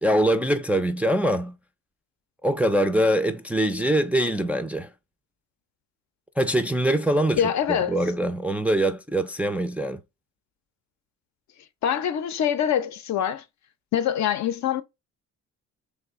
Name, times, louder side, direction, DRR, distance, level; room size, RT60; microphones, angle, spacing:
voice 1, 0.0-1.6 2.4-4.9 6.4-7.4 7.7-10.0, right 1 dB, 5° right, 0.3 m, -23 dB
voice 2, 7.4-8.0 11.8-13.4 13.9-14.8, left 9 dB, 65° left, 0.6 m, -24 dB
3.2 x 2.1 x 3.6 m
cardioid pair, 90°, 30 cm